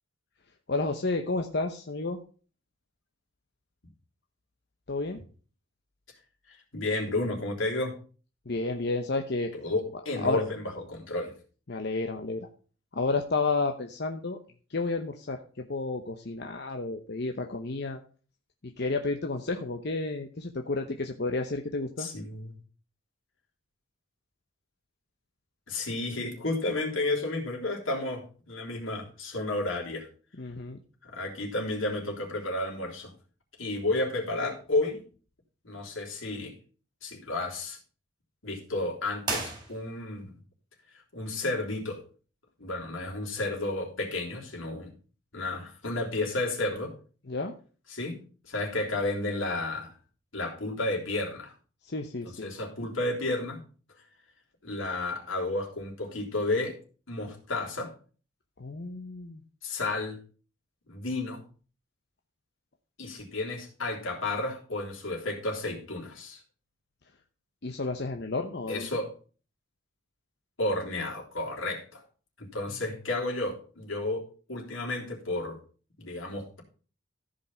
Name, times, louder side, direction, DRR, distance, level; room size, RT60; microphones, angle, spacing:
voice 1, 0.7-2.2 4.9-5.2 8.5-9.5 10.2-10.4 11.7-12.5 12.9-14.4 14.7-18.0 18.6-22.1 30.4-30.8 47.3-47.5 51.8-52.5 58.6-59.4 67.6-68.9, left 3 dB, 55° left, 4 dB, 0.9 m, -31 dB
voice 2, 6.5-7.9 9.6-11.3 22.0-22.6 25.7-30.1 31.0-33.1 33.6-35.0 35.6-36.5 37.0-37.8 38.4-40.3 41.1-42.0 42.6-44.9 45.3-46.9 47.9-48.2 48.5-49.9 50.3-51.5 52.4-53.6 54.6-56.8 57.1-57.9 59.6-60.2 60.9-61.4 63.0-66.4 68.7-69.1 70.6-72.0 72.4-74.2 74.5-75.6 76.0-76.6, left 2 dB, 80° left, -1 dB, 3.6 m, -32 dB
sound 1, 39.2-40.2, right 3 dB, 20° right, 4.0 m, -35 dB
14.0 x 5.3 x 5.7 m, 0.39 s
head